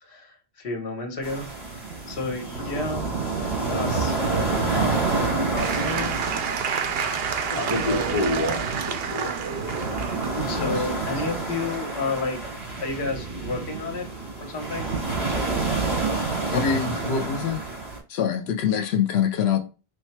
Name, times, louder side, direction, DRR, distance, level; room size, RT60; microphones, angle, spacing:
voice 1, 0.0-3.1 3.6-6.1 7.8-8.1 10.3-12.4 12.8-14.1 14.4-14.9, left 3 dB, 65° left, 1.2 m, -32 dB
sound 1, 1.2-18.0, right 3 dB, 40° right, 2.6 m, -29 dB
Applause / Crowd, 5.6-11.9, right 6 dB, 75° right, 0.8 m, -29 dB
voice 2, 7.5-9.5, left 2 dB, 40° left, 1.0 m, -28 dB
voice 3, 16.5-17.6 18.1-19.6, left 8 dB, 85° left, 0.9 m, -24 dB
5.0 x 2.3 x 4.4 m
omnidirectional pair, 1.1 m